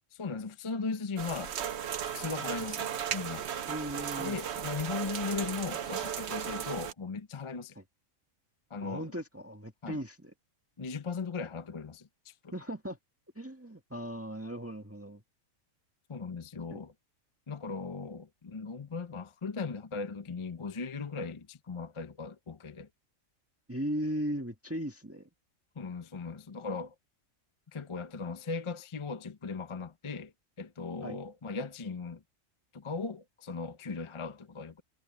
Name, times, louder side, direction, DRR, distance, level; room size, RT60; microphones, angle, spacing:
voice 1, 0.1-1.6 2.1-3.5 4.2-7.7 8.7-9.1 9.8-10.0 10.8-12.5 16.1-16.9 17.5-22.9 25.8-26.9 27.7-30.3 30.6-32.2 32.7-34.8, left 4 dB, 30° left, 0.6 m, -38 dB
sound 1, 1.2-6.9, right 8 dB, 60° right, 1.0 m, -36 dB
voice 2, 3.7-4.4 7.7-7.8 8.8-10.3 12.5-13.0 13.3-15.2 16.7-16.8 23.7-25.3 31.0-31.2, equal, 10° right, 1.6 m, -37 dB
omnidirectional pair, 1.4 m